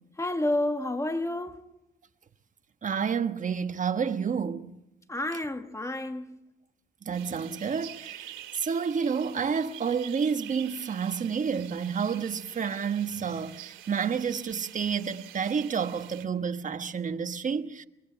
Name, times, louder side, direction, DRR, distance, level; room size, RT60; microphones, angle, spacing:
voice 1, 0.2-1.6 5.1-6.4, left 1 dB, 15° left, 1.7 m, -30 dB
voice 2, 2.8-4.8 7.0-17.8, right 6 dB, 40° right, 1.3 m, -30 dB
sound 1, 7.1-16.3, right 12 dB, 85° right, 2.5 m, -47 dB
23.5 x 23.5 x 5.9 m
cardioid pair, 90°, 20 cm